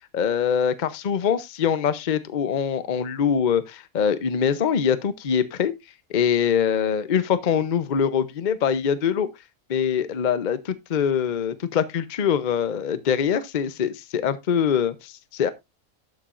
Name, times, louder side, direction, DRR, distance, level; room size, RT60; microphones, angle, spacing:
voice 1, 0.1-5.7 6.1-9.3 9.7-15.5, left 7 dB, 40° left, 0.7 m, -23 dB
11.5 x 7.3 x 2.5 m
omnidirectional pair, 1.5 m